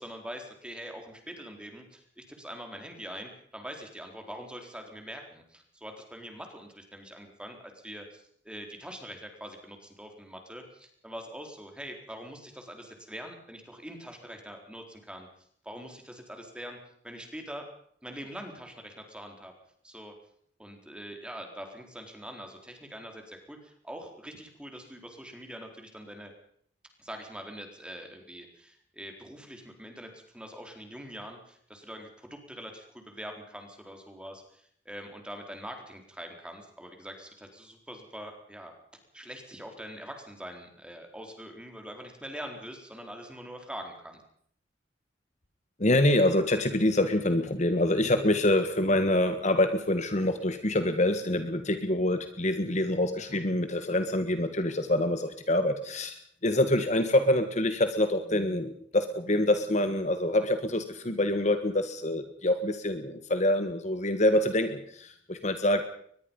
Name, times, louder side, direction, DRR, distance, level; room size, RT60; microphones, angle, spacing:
voice 1, 0.0-15.3 15.6-16.8 17.0-17.6 18.0-19.5 19.8-20.1 20.6-26.3 27.0-38.7 39.1-44.2, equal, 5° right, 4 dB, 4.1 m, -43 dB
voice 2, 45.8-65.8, left 1 dB, 40° left, 8 dB, 1.6 m, -26 dB
23.0 x 21.0 x 5.5 m, 0.63 s
head